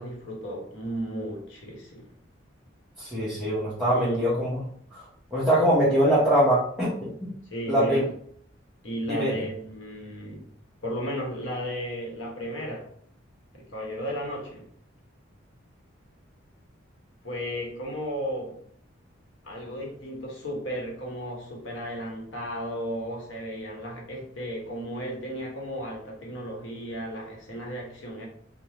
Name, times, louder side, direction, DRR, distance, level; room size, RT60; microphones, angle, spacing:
voice 1, 0.0-2.1 3.9-4.4 7.5-8.1 8.8-10.5 10.8-12.9 13.5-14.7 17.2-18.6 19.4-28.3, equal, 70° left, -1 dB, 0.9 m, -34 dB
voice 2, 3.0-4.6 4.9-5.1 5.3-7.3 7.7-8.0 9.1-9.4, equal, 5° right, -10 dB, 0.7 m, -23 dB
3.3 x 2.0 x 2.8 m, 0.62 s
head